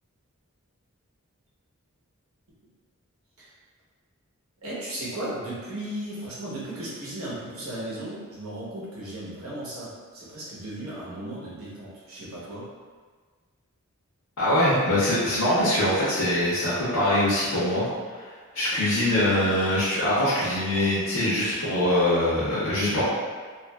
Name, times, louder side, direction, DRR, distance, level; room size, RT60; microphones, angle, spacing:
voice 1, 4.6-12.7, right 1 dB, 75° right, -7 dB, 0.9 m, -36 dB
voice 2, 14.4-17.9 18.1-23.0, left 1 dB, 85° left, -10 dB, 0.7 m, -23 dB
2.9 x 2.4 x 2.2 m, 1.5 s
head